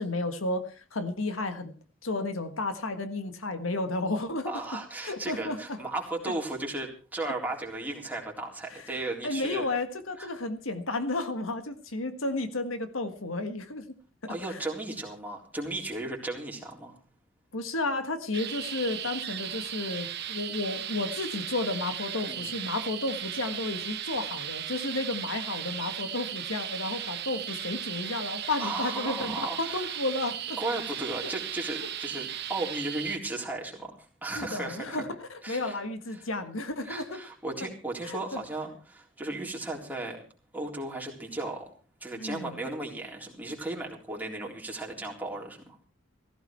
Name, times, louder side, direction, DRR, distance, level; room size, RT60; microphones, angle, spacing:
voice 1, 0.0-1.7 2.0-4.5 5.0-5.8 9.2-14.0 14.2-14.6 17.5-30.4 31.2-31.3 34.3-37.2 38.0-38.4 42.2-42.6, left 2 dB, 85° left, 1.7 m, -32 dB
voice 2, 4.5-9.6 10.2-10.3 14.3-17.0 22.3-22.6 28.6-29.9 30.6-35.1 35.4-35.8 36.1-36.3 36.8-40.2 40.5-41.7 42.0-45.8, right 2 dB, 10° right, 3.8 m, -35 dB
sound 1, 18.3-33.2, right 10 dB, 55° right, 1.1 m, -36 dB
16.0 x 15.5 x 4.6 m
head